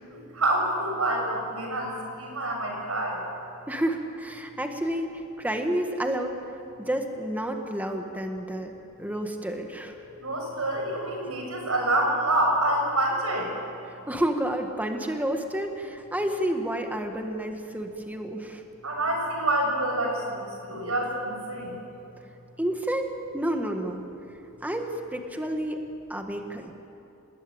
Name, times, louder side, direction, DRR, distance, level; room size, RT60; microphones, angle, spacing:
voice 1, 0.1-1.9 2.2-3.2 10.2-13.5 18.8-21.7, right 1 dB, 75° right, 1 dB, 7.4 m, -27 dB
voice 2, 3.7-6.4 6.8-8.7 9.0-10.0 13.8-18.7 22.6-24.0 24.6-25.8 26.1-26.7, right 1 dB, 5° right, 3 dB, 1.8 m, -30 dB
28.5 x 20.0 x 8.9 m, 2.7 s
head